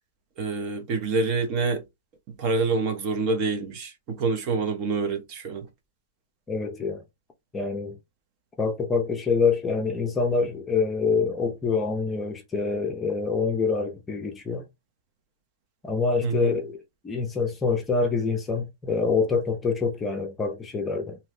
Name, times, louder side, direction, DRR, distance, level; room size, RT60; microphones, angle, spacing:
voice 1, 0.4-1.8 2.4-5.7 16.2-16.5, right 4 dB, 35° right, 0.8 m, -26 dB
voice 2, 6.5-7.0 7.5-8.0 8.6-14.6 15.8-16.8 17.0-21.2, left 4 dB, 15° left, 0.6 m, -26 dB
2.7 x 2.2 x 3.2 m
hypercardioid pair, 140°, 0 cm